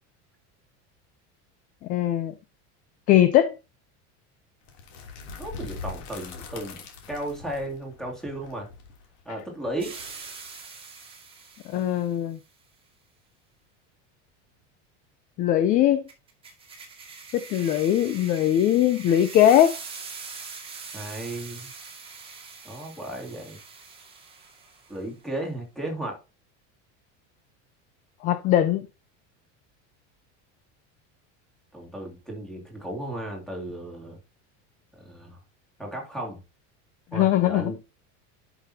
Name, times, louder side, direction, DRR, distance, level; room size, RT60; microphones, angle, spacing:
voice 1, 1.9-2.3 3.1-3.5 11.6-12.4 15.4-16.0 17.3-19.8 28.2-28.9 37.1-37.7, left 11 dB, 25° left, 0.4 m, -20 dB
sound 1, 4.7-10.5, left 4 dB, 50° left, 3.0 m, -42 dB
voice 2, 5.4-6.8 7.1-8.7 9.2-9.9 20.9-21.7 22.6-23.6 24.9-26.2 31.7-34.2 35.0-35.4 35.8-36.4 37.1-37.8, right 1 dB, ahead, 2.3 m, -34 dB
sound 2, 9.8-12.1 16.1-25.0, right 5 dB, 15° right, 1.9 m, -43 dB
11.0 x 5.9 x 2.8 m
cardioid pair, 175°, 36 cm